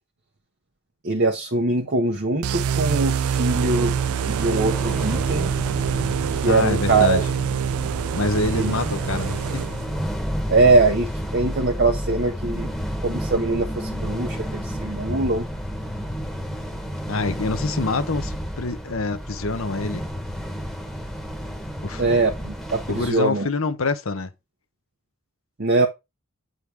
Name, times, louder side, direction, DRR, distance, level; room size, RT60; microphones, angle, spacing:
voice 1, 1.0-3.9 4.3-5.5 6.3-7.2 8.5-8.7 10.5-12.7 13.0-15.4 22.0-23.5 25.6-25.9, right 3 dB, 50° right, 1.1 m, -22 dB
sound 1, 2.4-10.1, right 7 dB, 80° right, 0.4 m, -25 dB
sound 2, 3.5-23.1, equal, ahead, 1.5 m, -31 dB
voice 2, 6.5-7.2 8.1-9.6 17.1-20.0 21.8-22.0 22.9-24.3, left 3 dB, 65° left, 0.9 m, -26 dB
8.5 x 3.9 x 4.7 m
head